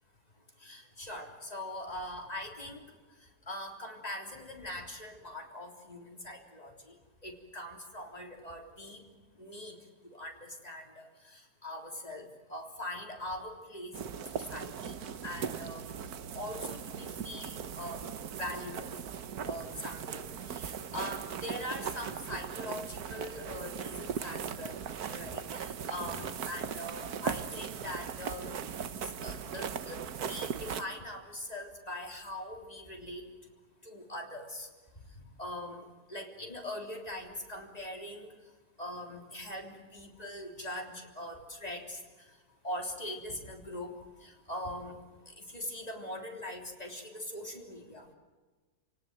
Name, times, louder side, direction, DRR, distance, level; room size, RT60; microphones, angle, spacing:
voice 1, 0.6-2.8 3.5-6.9 7.2-9.0 9.4-9.8 10.0-14.1 14.5-14.9 15.2-15.9 16.3-18.1 18.4-18.9 19.5-24.8 25.1-28.5 29.0-33.2 33.8-34.7 35.4-38.3 38.8-42.0 42.6-43.9 44.2-44.9 45.5-48.1, left 1 dB, 25° left, 2 dB, 3.7 m, -42 dB
sound 1, 13.9-30.8, right 7 dB, 75° right, 1.6 m, -39 dB
29.5 x 18.0 x 7.8 m, 1.3 s
omnidirectional pair, 1.6 m